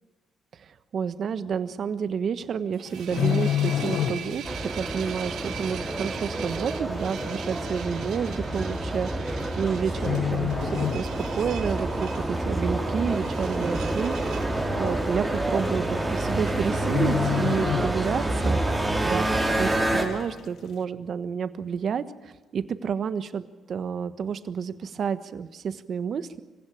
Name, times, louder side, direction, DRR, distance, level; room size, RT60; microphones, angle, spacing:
voice 1, 0.5-4.5 4.7-14.5 14.8-18.6 19.0-26.4, right 7 dB, 55° right, 12 dB, 1.3 m, -30 dB
sound 1, 2.6-19.7, right 9 dB, 80° right, 2.0 m, -43 dB
sound 2, 2.9-4.6 4.9-5.1 5.7-5.8 6.7-6.8 7.0-7.1 7.9-8.2 9.3-9.7 10.0-11.5 11.9-12.1 12.6-13.1 13.4-13.5 13.8-13.9 14.3-14.4 15.4-15.5 15.7-16.0 16.3-16.4 16.8-18.5 18.8-18.9, left 9 dB, 65° left, 1.4 m, -28 dB
sound 3, 4.4-20.0, right 1 dB, 10° right, 5.5 m, -28 dB
25.5 x 16.0 x 8.8 m, 1.2 s
cardioid pair, 90°, 0 cm